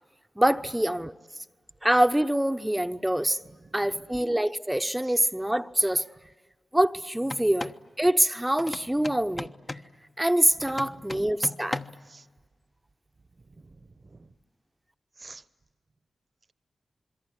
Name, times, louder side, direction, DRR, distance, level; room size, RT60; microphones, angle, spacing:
voice 1, 0.4-1.1 1.8-3.4 3.7-6.0 6.7-7.7 8.0-9.5 10.2-11.8, right 1 dB, 10° right, 0.9 m, -25 dB
voice 2, 3.6-4.1 5.0-5.1 10.7-11.0 12.1-12.2 13.5-14.3 15.2-15.4, right 3 dB, 50° right, 1.1 m, -50 dB
sound 1, 7.2-7.8 8.6-9.9 10.6-12.1, left 2 dB, 35° left, 1.1 m, -37 dB
27.0 x 22.5 x 9.8 m
cardioid pair, 50°, 0 cm